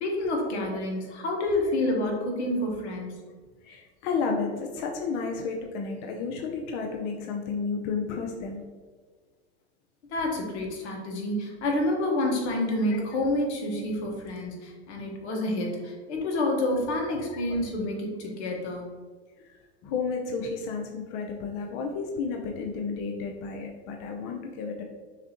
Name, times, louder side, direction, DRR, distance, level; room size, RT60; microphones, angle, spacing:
voice 1, 0.0-3.1 10.1-18.9, left 1 dB, 80° left, 0 dB, 1.2 m, -28 dB
voice 2, 3.6-8.6 12.9-13.0 19.4-19.5 19.8-24.8, left 4 dB, 45° left, 1 dB, 0.5 m, -32 dB
6.0 x 2.7 x 2.8 m, 1.5 s
supercardioid pair, 135°, 34 cm